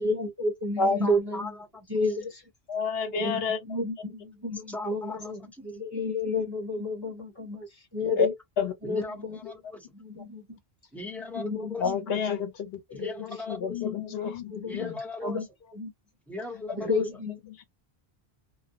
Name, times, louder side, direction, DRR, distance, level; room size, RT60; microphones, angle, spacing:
voice 1, 0.0-1.5 1.9-2.4 3.2-3.4 3.7-6.9 7.4-8.3 8.8-9.4 10.3-10.4 11.4-11.7 13.0-13.2 14.5-14.9 15.2-15.4 15.7-15.9 16.7-17.3, left 2 dB, 30° right, 0.6 m, -30 dB
voice 2, 1.0-1.8 4.7-5.7 8.8-9.5 10.9-11.8 12.9-13.9 14.6-15.5 16.3-17.1, left 3 dB, ahead, 0.9 m, -38 dB
voice 3, 2.7-3.6 8.2-8.3 8.6-8.7 11.3-13.1 13.5-15.0 16.7-16.8 17.6-17.7, left 5 dB, 75° left, 0.9 m, -29 dB
2.3 x 2.0 x 2.7 m
omnidirectional pair, 1.0 m